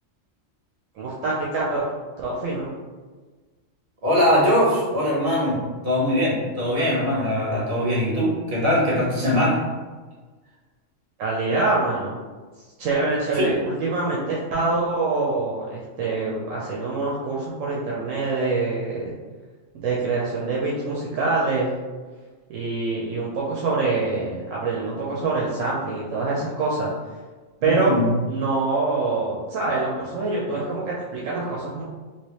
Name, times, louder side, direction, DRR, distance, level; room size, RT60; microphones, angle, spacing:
voice 1, 1.0-1.8 2.2-2.7 11.2-12.2 12.8-19.1 19.7-21.7 22.5-26.9 27.6-27.9 28.3-31.8, right 3 dB, 80° right, -5 dB, 1.0 m, -25 dB
voice 2, 4.0-5.6 5.8-9.6 13.3-13.5 27.6-28.2, left 1 dB, 50° right, -6 dB, 1.5 m, -21 dB
3.2 x 2.8 x 3.0 m, 1.3 s
omnidirectional pair, 1.3 m